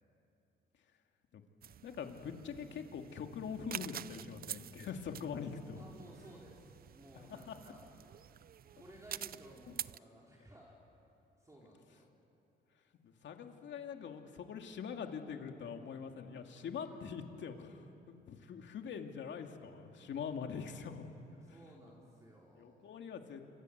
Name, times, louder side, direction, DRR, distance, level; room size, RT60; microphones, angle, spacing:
sound 1, 1.6-10.0, right 10 dB, 50° right, 0.5 m, -48 dB
voice 1, 1.8-5.8 7.3-7.6 13.0-21.0 22.6-23.4, left 6 dB, 65° left, 4 dB, 2.4 m, -43 dB
voice 2, 5.8-7.9 8.2-8.3 8.7-10.8 11.4-12.1 16.2-16.7 21.3-23.0, right 1 dB, 15° right, -3 dB, 4.5 m, -57 dB
27.0 x 25.0 x 8.0 m, 2.9 s
cardioid pair, 90°, 20 cm